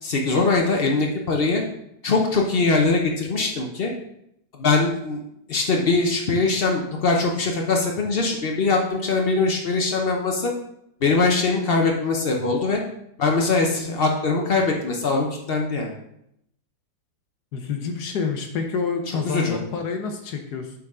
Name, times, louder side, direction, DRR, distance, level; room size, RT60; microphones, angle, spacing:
voice 1, 0.0-1.6 2.0-3.9 4.6-5.2 5.5-10.5 11.0-12.8 13.2-15.9 19.3-19.6, left 3 dB, 85° left, 1 dB, 0.5 m, -22 dB
voice 2, 17.5-20.7, left 5 dB, 65° left, 5 dB, 1.1 m, -28 dB
7.9 x 4.6 x 3.6 m, 0.76 s
omnidirectional pair, 2.1 m